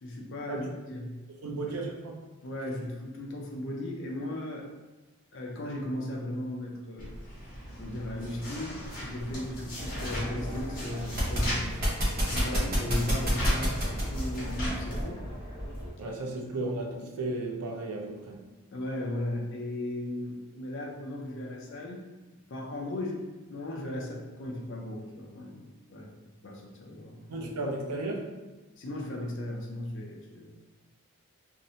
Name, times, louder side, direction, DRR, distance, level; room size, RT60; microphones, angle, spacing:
voice 1, 0.0-1.2 2.4-4.7 5.3-7.1 7.8-11.7 12.3-15.2 18.7-22.0 22.5-26.1 26.4-27.7 28.8-30.5, left 1 dB, 55° left, 0 dB, 0.5 m, -36 dB
voice 2, 1.3-2.2 12.4-12.7 16.0-18.4 27.3-28.4, right 2 dB, 90° right, 0 dB, 0.5 m, -35 dB
sound 1, 7.0-15.1, equal, 40° left, 0.9 m, -37 dB
sound 2, 9.8-15.9, equal, 45° right, 0.8 m, -31 dB
2.6 x 2.1 x 2.7 m, 1.2 s
head